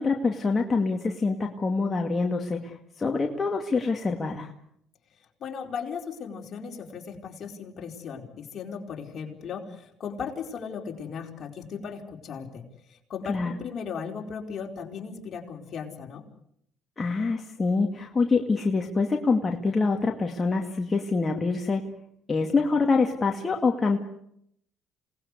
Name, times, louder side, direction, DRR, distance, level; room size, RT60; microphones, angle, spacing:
voice 1, 0.0-4.5 13.3-13.5 17.0-21.8 22.3-24.0, left 4 dB, 25° left, 2 dB, 2.3 m, -25 dB
voice 2, 5.4-16.2, left 6 dB, 50° left, 2 dB, 4.7 m, -37 dB
27.5 x 19.5 x 8.3 m, 0.73 s
supercardioid pair, 90°, 0 cm